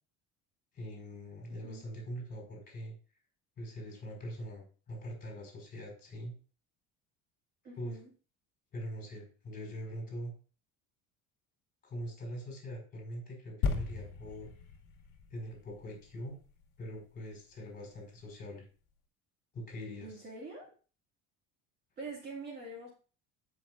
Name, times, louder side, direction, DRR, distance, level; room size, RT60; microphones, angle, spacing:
voice 1, 0.7-2.9 3.6-6.3 7.8-8.0 8.7-10.3 11.8-14.5 15.3-16.4 16.8-18.6 19.5-20.3, equal, 30° left, 0 dB, 4.8 m, -43 dB
voice 2, 7.6-8.1 20.0-20.7 22.0-22.9, right 3 dB, 30° right, -3 dB, 2.2 m, -44 dB
sound 1, 13.6-17.2 17.8-17.9, left 4 dB, 60° left, 2.1 m, -37 dB
16.5 x 6.0 x 2.5 m, 0.37 s
cardioid pair, 170°, 32 cm